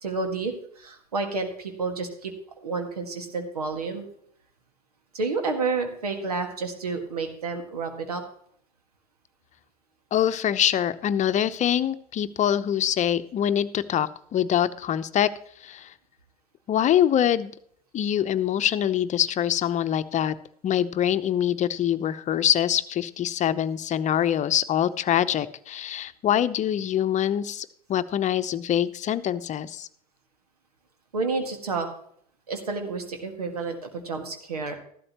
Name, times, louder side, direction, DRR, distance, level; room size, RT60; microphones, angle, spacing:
voice 1, 0.0-2.3 2.6-4.1 5.1-8.2 31.1-31.9 32.5-34.8, right 4 dB, 90° right, 5 dB, 1.9 m, -30 dB
voice 2, 10.1-15.3 15.6-15.9 16.7-17.5 17.9-20.3 20.6-29.9, left 10 dB, 40° left, 13 dB, 0.8 m, -24 dB
14.0 x 12.0 x 3.0 m, 0.65 s
hypercardioid pair, 75°, 19 cm